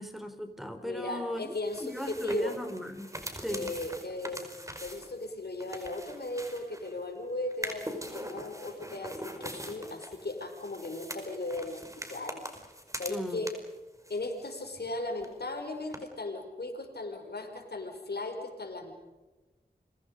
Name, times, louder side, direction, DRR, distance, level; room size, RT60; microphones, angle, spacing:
voice 1, 0.0-1.5 1.8-3.1 3.4-3.7 13.1-13.4, equal, ahead, 7 dB, 4.1 m, -36 dB
voice 2, 0.8-2.6 3.5-4.5 4.8-12.5 13.0-13.5 14.1-18.9, left 2 dB, 90° left, 3 dB, 5.1 m, -37 dB
sound 1, 1.5-7.0 7.5-13.8 14.0-14.9 15.2-15.3 15.9-16.0, right 1 dB, 20° right, 5.3 m, -43 dB
30.0 x 24.5 x 5.3 m, 1.1 s
wide cardioid pair, 45°, 16 cm